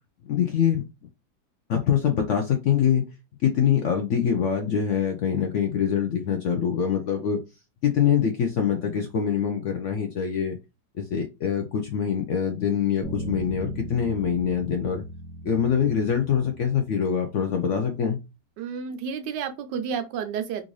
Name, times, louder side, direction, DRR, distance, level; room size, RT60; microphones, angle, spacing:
voice 1, 0.2-0.8 1.7-3.1 3.4-7.4 7.8-10.6 11.1-15.0 15.4-18.2, left 8 dB, 70° left, 0.7 m, -24 dB
sound 1, 13.0-17.4, right 1 dB, 10° left, 0.8 m, -38 dB
voice 2, 18.6-20.7, right 7 dB, 85° right, 1.3 m, -31 dB
3.8 x 2.5 x 3.1 m
omnidirectional pair, 1.8 m